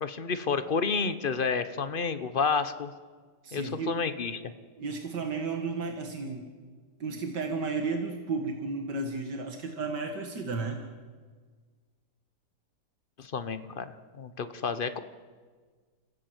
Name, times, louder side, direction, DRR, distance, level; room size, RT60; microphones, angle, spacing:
voice 1, 0.0-2.9 3.5-4.5 13.2-15.0, left 5 dB, 40° left, 12 dB, 1.0 m, -30 dB
voice 2, 3.4-3.9 4.8-6.5 7.0-10.8, right 4 dB, 85° right, 4 dB, 2.4 m, -33 dB
28.5 x 16.0 x 8.0 m, 1.5 s
omnidirectional pair, 1.8 m